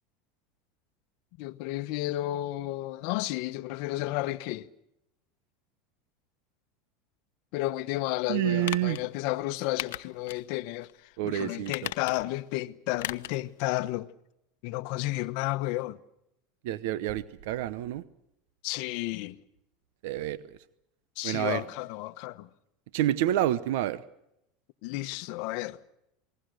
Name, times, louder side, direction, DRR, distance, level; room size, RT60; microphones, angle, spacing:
voice 1, 1.4-4.7 7.5-10.9 11.2-14.1 14.6-16.0 18.6-19.4 21.2-22.5 24.8-25.8, left 17 dB, 60° left, 1.1 m, -32 dB
voice 2, 8.3-9.0 11.2-11.9 16.6-18.0 20.0-20.4 21.2-21.6 22.9-24.0, right 13 dB, 75° right, 0.8 m, -28 dB
sound 1, 8.6-9.0 9.8-10.4 10.8-10.9 11.6-12.4 13.0-13.4 13.7-13.8, left 15 dB, 85° left, 0.8 m, -36 dB
28.0 x 20.5 x 6.5 m
supercardioid pair, 145°, 0 cm